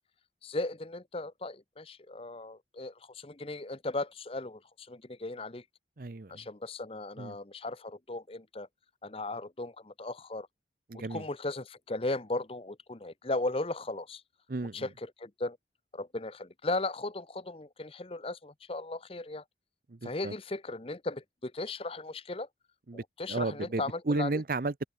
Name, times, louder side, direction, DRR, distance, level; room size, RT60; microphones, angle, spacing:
voice 1, 0.4-5.6 6.3-8.7 9.0-10.5 10.9-14.2 14.7-15.6 15.9-19.4 20.0-22.5 22.9-24.3, left 2 dB, 30° left, 0.9 m, -37 dB
voice 2, 6.0-6.4 7.2-7.4 10.9-11.2 14.5-14.9 19.9-20.3 22.9-23.0 23.3-24.9, right 3 dB, 50° right, 0.7 m, -33 dB
open air
head